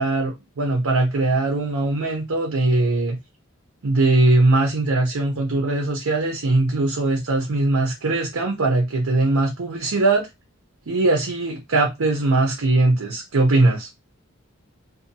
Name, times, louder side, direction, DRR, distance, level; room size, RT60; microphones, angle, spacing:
voice 1, 0.0-3.2 3.8-10.3 10.9-13.9, right 2 dB, 80° right, 0.7 m, -20 dB
2.7 x 2.2 x 2.6 m
head